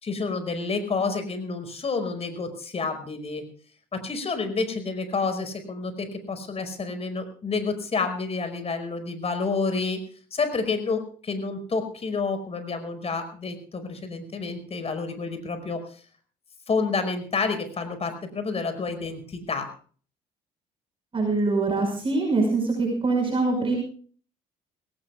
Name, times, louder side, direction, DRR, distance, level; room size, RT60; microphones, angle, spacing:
voice 1, 0.0-3.4 3.9-10.0 10.3-15.8 16.7-19.7, left 4 dB, 40° left, 8 dB, 5.3 m, -29 dB
voice 2, 21.1-23.8, right 3 dB, 35° right, 1 dB, 5.8 m, -23 dB
22.5 x 18.0 x 2.4 m, 0.43 s
supercardioid pair, 80°, 16 cm